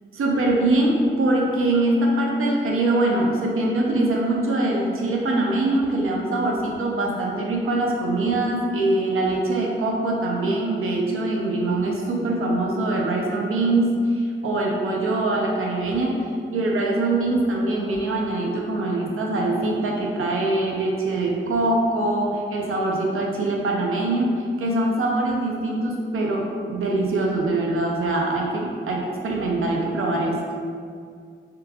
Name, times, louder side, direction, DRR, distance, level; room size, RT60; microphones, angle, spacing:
voice 1, 0.1-16.2 16.5-24.3 24.6-30.4, right 2 dB, 85° right, -1 dB, 0.6 m, -23 dB
3.6 x 2.3 x 2.8 m, 2.2 s
wide cardioid pair, 90°, 21 cm